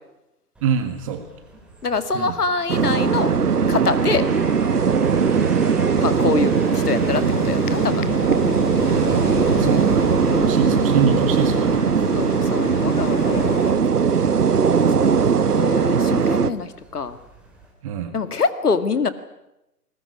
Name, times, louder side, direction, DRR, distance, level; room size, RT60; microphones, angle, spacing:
sound 1, 0.6-17.7, right 1 dB, ahead, 2.9 m, -42 dB
voice 1, 0.6-1.2 2.1-2.3 5.1-5.5 8.9-11.9 14.1-14.3 17.8-18.1, right 7 dB, 20° right, 8 dB, 1.8 m, -26 dB
voice 2, 1.8-3.3 3.7-4.3 6.0-8.0 9.5-9.8 10.3-10.8 12.1-13.4 14.8-17.2 18.1-19.1, left 4 dB, 65° left, 12 dB, 2.3 m, -25 dB
sound 2, 2.7-16.5, right 6 dB, 70° right, 1.4 m, -19 dB
sound 3, 6.0-13.7, left 8 dB, 30° left, 1.2 m, -31 dB
21.0 x 20.0 x 9.9 m, 0.91 s
figure-of-eight pair, 145°, 48 cm